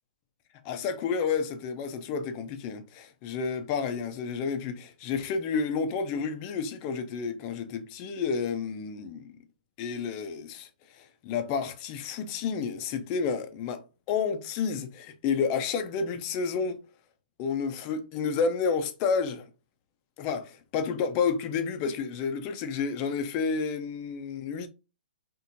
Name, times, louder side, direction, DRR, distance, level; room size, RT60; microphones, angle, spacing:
voice 1, 0.6-9.4 9.8-10.7 10.9-16.8 17.4-19.5 20.2-24.7, left 5 dB, 25° left, 0.5 m, -30 dB
4.2 x 3.5 x 2.6 m
hypercardioid pair, 165°, 5 cm